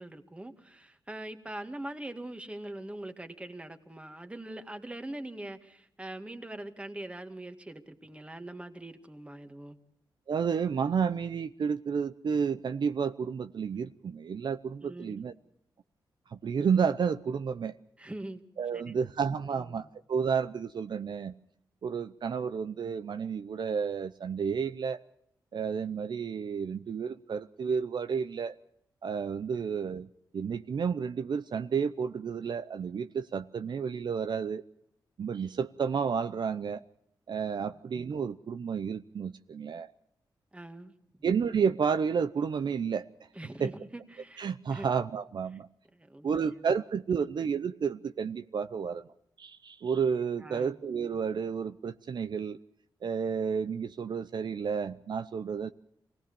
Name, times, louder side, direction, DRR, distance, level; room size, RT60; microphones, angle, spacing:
voice 1, 0.0-9.8 14.8-15.2 18.0-18.4 18.7-19.0 19.6-19.8 40.5-40.9 43.3-44.9 45.9-46.6 47.2-47.3 50.4-50.7, right 1 dB, 15° right, 7 dB, 2.1 m, -43 dB
voice 2, 10.3-15.3 16.3-17.8 18.6-21.3 21.8-25.0 25.5-28.6 29.0-30.1 30.3-34.6 35.2-36.8 37.3-39.9 41.2-43.1 43.6-43.7 44.4-45.7 46.2-49.0 49.4-52.6 53.0-55.7, right 6 dB, 65° right, 10 dB, 0.7 m, -31 dB
24.0 x 18.0 x 7.0 m, 0.72 s
cardioid pair, 75°, 8 cm